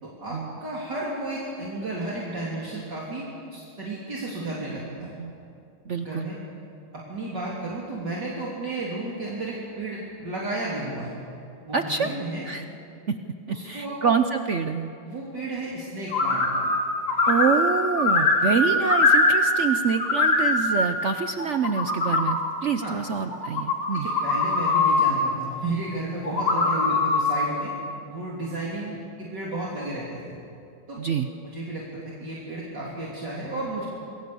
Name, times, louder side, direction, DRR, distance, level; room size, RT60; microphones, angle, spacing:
voice 1, 0.0-3.3 3.5-5.1 6.0-6.3 6.9-11.2 11.7-12.5 13.5-14.0 15.0-16.5 22.8-23.0 23.9-27.7 28.1-30.3 30.9-31.0 31.4-33.9, right 2 dB, 50° right, -5 dB, 3.8 m, -33 dB
voice 2, 5.9-6.3 11.7-12.1 12.5-12.6 13.1-13.2 13.5-14.9 17.3-24.1 31.0-31.3, right 6 dB, 80° right, 7 dB, 0.6 m, -26 dB
sound 1, 16.1-16.8 17.1-19.7 20.0-20.8 21.4-22.4 23.3-25.1 26.2-27.4, left 3 dB, 75° left, 3.7 m, -22 dB
28.0 x 22.5 x 7.0 m, 2.5 s
omnidirectional pair, 2.3 m